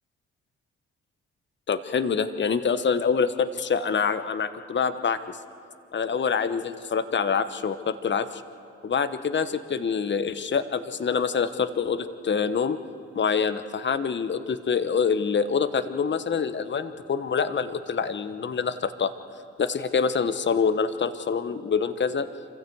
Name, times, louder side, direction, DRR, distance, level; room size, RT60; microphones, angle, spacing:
voice 1, 1.7-5.4 5.9-8.4 8.8-12.8 13.1-19.1 19.6-22.3, left 6 dB, 40° left, 11 dB, 1.1 m, -26 dB
26.5 x 15.0 x 8.0 m, 2.6 s
hypercardioid pair, 45°, 30 cm